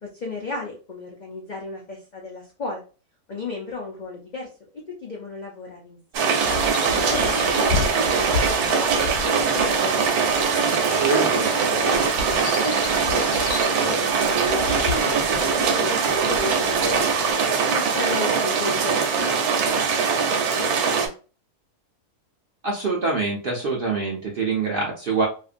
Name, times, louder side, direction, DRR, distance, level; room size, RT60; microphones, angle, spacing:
voice 1, 0.1-2.8 3.3-4.5 4.9-6.4 6.9-8.3 8.7-10.4 11.1-14.1 14.4-17.1 17.7-20.1 20.6-21.1, left 3 dB, 60° left, -2 dB, 0.4 m, -34 dB
sound 1, 6.1-21.1, right 5 dB, 85° right, 1.1 m, -22 dB
sound 2, 6.4-17.3, left 4 dB, 80° left, 1.1 m, -33 dB
voice 2, 22.6-25.3, right 4 dB, 60° right, -1 dB, 0.6 m, -25 dB
2.8 x 2.5 x 2.4 m, 0.35 s
omnidirectional pair, 1.6 m